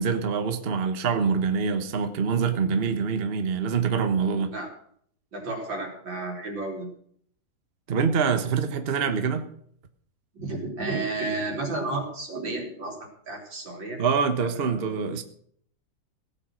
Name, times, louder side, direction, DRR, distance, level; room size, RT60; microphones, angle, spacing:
voice 1, 0.0-4.5 7.9-9.5 14.0-15.2, right 6 dB, 35° right, 8 dB, 1.2 m, -25 dB
voice 2, 5.3-6.9 10.3-14.0 14.4-14.9, right 2 dB, 75° right, 2 dB, 4.3 m, -32 dB
16.5 x 8.9 x 6.3 m, 0.62 s
omnidirectional pair, 2.1 m